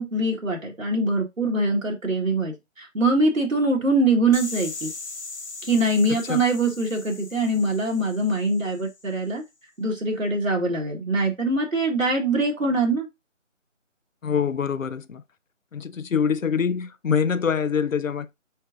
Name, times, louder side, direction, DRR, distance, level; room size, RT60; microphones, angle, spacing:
voice 1, 0.0-4.9 5.6-9.4 9.8-13.1, right 2 dB, 85° right, 1.6 m, -23 dB
sound 1, 4.3-9.1, left 3 dB, 60° left, 0.9 m, -39 dB
voice 2, 6.1-6.4 14.2-15.2 15.7-18.4, left 6 dB, 80° left, 0.6 m, -25 dB
4.7 x 4.4 x 2.5 m
figure-of-eight pair, 160°, 39 cm